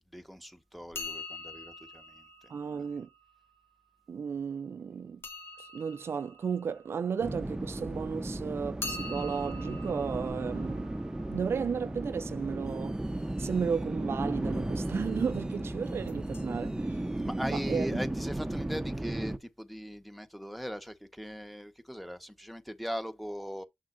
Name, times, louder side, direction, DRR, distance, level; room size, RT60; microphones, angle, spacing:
voice 1, 0.1-2.2 17.2-23.6, equal, ahead, 1.4 m, -39 dB
sound 1, 0.9-3.7 5.2-7.9 8.8-12.6 16.1-16.4 16.7-16.8 17.5-17.6 17.9-18.0, left 2 dB, 65° left, 2.5 m, -45 dB
voice 2, 2.5-3.1 4.1-5.2 5.6-10.9 11.3-13.0 13.4-17.0 17.5-17.9, right 6 dB, 65° right, 0.5 m, -34 dB
sound 2, 7.2-19.4, right 1 dB, 15° right, 0.9 m, -35 dB
8.3 x 6.2 x 2.7 m
cardioid pair, 65°, 4 cm